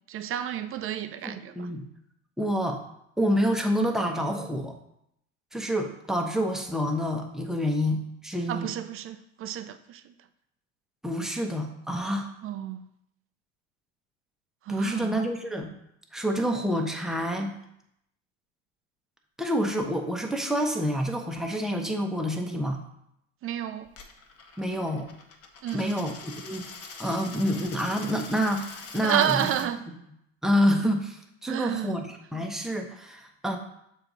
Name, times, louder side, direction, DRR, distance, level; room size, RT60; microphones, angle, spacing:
voice 1, 0.1-1.7 8.5-10.0 12.4-12.8 14.7-15.2 23.4-23.9 25.6-26.0 29.0-29.8 31.5-32.0, right 10 dB, 35° right, 10 dB, 0.6 m, -30 dB
voice 2, 1.2-1.9 2.4-2.8 3.2-4.8 5.5-8.7 11.0-12.3 14.7-15.7 16.1-17.6 19.4-22.8 24.6-25.1 25.7-26.6 27.0-29.5 30.4-33.6, equal, ahead, 2 dB, 0.9 m, -28 dB
Coin (dropping), 23.9-29.7, left 4 dB, 40° left, 1.1 m, -44 dB
6.9 x 4.6 x 3.9 m, 0.77 s
hypercardioid pair, 85°, 38 cm